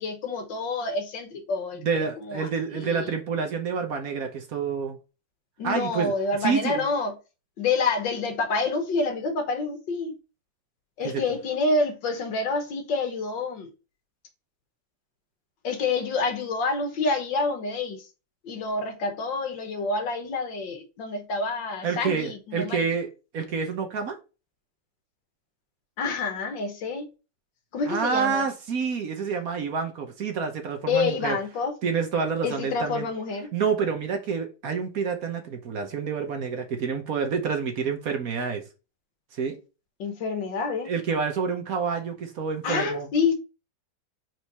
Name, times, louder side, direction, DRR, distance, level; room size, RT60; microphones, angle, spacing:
voice 1, 0.0-2.5 2.7-3.1 5.6-7.1 7.6-10.1 11.0-13.7 15.6-18.0 18.4-22.8 26.0-27.1 27.7-28.4 30.9-31.7 32.4-33.5 40.0-40.9 42.6-43.3, left 3 dB, 75° left, 2.0 m, -28 dB
voice 2, 1.8-5.0 5.6-6.1 6.4-6.9 11.0-11.2 21.8-23.1 23.3-24.2 27.9-31.4 31.8-33.1 33.5-38.6 39.3-39.6 40.8-43.1, right 6 dB, 55° right, 1.2 m, -28 dB
5.0 x 4.6 x 4.0 m
omnidirectional pair, 2.0 m